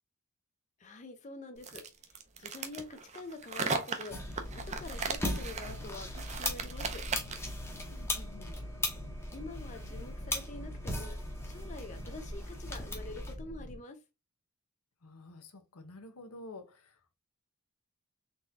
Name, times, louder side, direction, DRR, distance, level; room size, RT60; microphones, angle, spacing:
voice 1, 0.8-1.9 2.4-4.4 4.7-7.0 9.3-11.1 11.4-14.0, left 2 dB, 35° left, 0.5 m, -46 dB
sound 1, 1.6-7.5, right 4 dB, 30° right, 0.6 m, -37 dB
sound 2, 4.1-13.8, left 1 dB, 50° left, 1.0 m, -45 dB
sound 3, 4.1-13.3, left 1 dB, 10° left, 0.8 m, -39 dB
voice 2, 7.9-8.6 15.0-17.1, left 2 dB, 85° left, 0.8 m, -50 dB
4.0 x 3.6 x 2.7 m
head